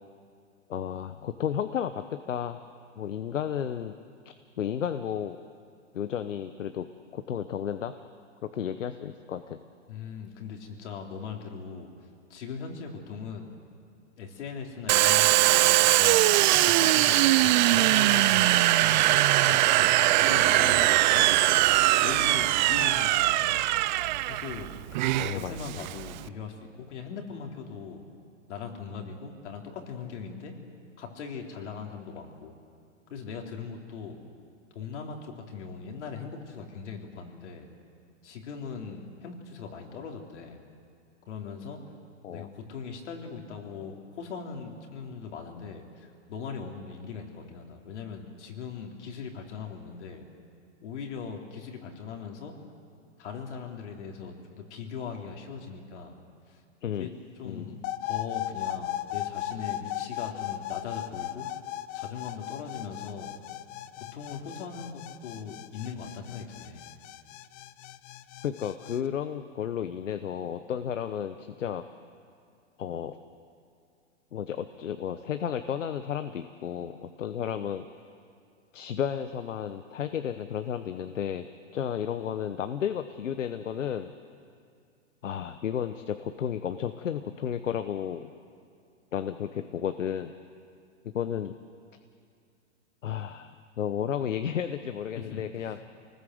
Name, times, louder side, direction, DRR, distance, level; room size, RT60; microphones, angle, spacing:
voice 1, 0.7-2.6 3.0-3.9 4.2-5.4 5.9-6.9 7.1-7.9 8.4-9.6 21.1-21.3 25.2-25.5 42.2-42.5 56.8-57.1 57.4-57.8 68.4-71.8 72.8-73.2 74.3-77.8 78.7-81.5 81.7-84.1 85.2-88.3 89.1-90.3 91.0-91.6 93.0-95.8, left 9 dB, 85° left, 9 dB, 1.1 m, -33 dB
voice 2, 9.9-11.9 12.3-13.5 14.2-21.4 22.0-23.6 24.3-24.7 25.3-28.0 28.5-30.5 31.0-32.6 33.1-34.2 34.7-37.7 38.2-40.6 41.3-41.8 42.3-50.3 50.8-52.5 53.2-56.1 56.5-56.6 56.9-57.1 57.4-61.5 61.9-63.3 64.0-66.8 95.1-95.8, left 5 dB, 65° left, 1 dB, 3.8 m, -40 dB
Domestic sounds home sounds, 14.9-26.3, right 16 dB, 40° right, 0.5 m, -22 dB
sound 1, 57.8-69.0, left 14 dB, 25° left, 0.5 m, -37 dB
25.5 x 19.5 x 7.9 m, 2.3 s
hypercardioid pair, 135°, 37 cm